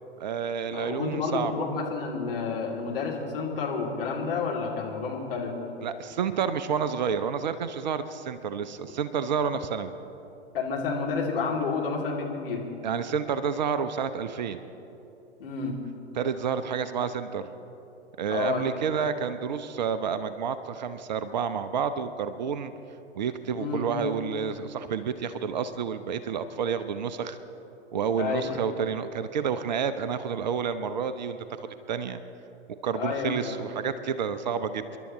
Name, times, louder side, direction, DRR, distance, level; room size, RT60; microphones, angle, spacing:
voice 1, 0.2-1.5 5.8-9.9 12.8-14.6 16.1-17.5 18.2-22.7 23.1-27.4 27.9-32.2 32.8-34.8, right 7 dB, 40° right, 11 dB, 0.6 m, -29 dB
voice 2, 0.7-5.5 10.5-12.6 15.4-15.8 18.3-18.7 23.5-23.9 28.2-28.6 32.9-33.6, left 5 dB, 55° left, -2 dB, 2.8 m, -30 dB
28.5 x 11.5 x 3.1 m, 2.9 s
figure-of-eight pair, 110°, 35 cm